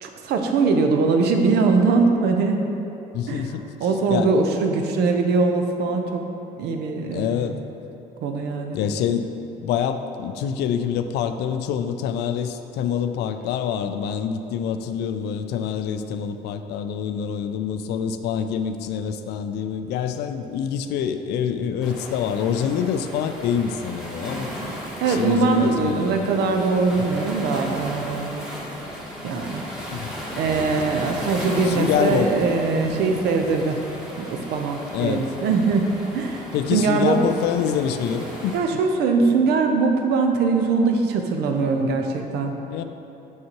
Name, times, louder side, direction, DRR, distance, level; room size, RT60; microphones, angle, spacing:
voice 1, 0.0-2.6 3.3-3.5 3.8-6.2 6.6-7.6 8.2-8.8 25.0-28.5 29.2-29.6 30.3-33.8 34.2-35.9 36.1-36.4 36.7-37.2 38.5-42.6, right 4 dB, 75° right, 4 dB, 0.6 m, -21 dB
voice 2, 3.1-3.7 4.1-4.3 7.1-7.6 8.7-9.3 9.6-24.5 25.1-26.3 29.9-30.1 31.6-32.3 32.7-33.2 34.9-35.3 36.5-38.8 42.7-42.8, left 8 dB, 80° left, 9 dB, 0.4 m, -26 dB
Waves surf, 21.8-38.6, equal, 5° right, 1.1 m, -35 dB
6.4 x 5.6 x 2.9 m, 3.0 s
cardioid pair, 110°, 17 cm